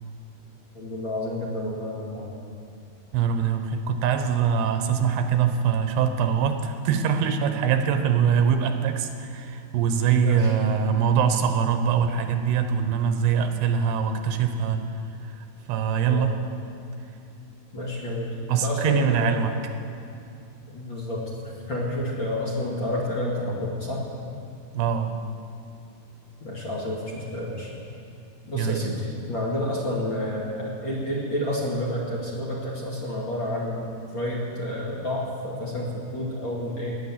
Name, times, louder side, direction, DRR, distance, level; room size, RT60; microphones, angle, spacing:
voice 1, 0.7-2.3 10.2-10.5 16.1-16.3 17.7-19.4 20.7-21.3 21.7-24.0 26.4-27.7 28.4-37.0, left 1 dB, 40° left, -4 dB, 2.2 m, -29 dB
voice 2, 3.1-14.8 15.2-15.3 15.7-16.3 18.5-19.5 24.7-25.1 28.5-28.9, right 7 dB, 85° right, 7 dB, 3.1 m, -23 dB
18.0 x 10.5 x 7.4 m, 2.5 s
omnidirectional pair, 4.6 m